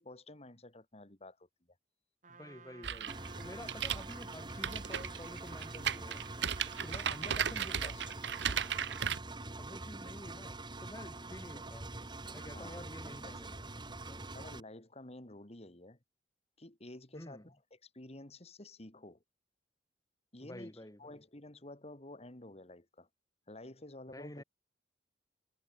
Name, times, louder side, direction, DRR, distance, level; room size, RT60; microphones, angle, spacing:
voice 1, 0.0-1.5 6.9-8.2 11.0-11.1 12.5-13.4 14.3-16.0 16.6-19.2 20.3-23.1 23.5-24.4, left 2 dB, 35° left, 2.5 m, -52 dB
Trumpet, 2.2-7.5, right 4 dB, 45° right, 6.7 m, -56 dB
voice 2, 2.3-6.2 6.8-7.9 9.6-11.9 12.3-13.7 14.1-14.3 17.1-17.5 20.4-21.2 24.1-24.4, left 1 dB, 20° left, 4.8 m, -50 dB
sound 1, 2.8-9.2, right 8 dB, 70° right, 1.0 m, -35 dB
Engine, 3.1-14.6, right 2 dB, 25° right, 2.7 m, -45 dB
head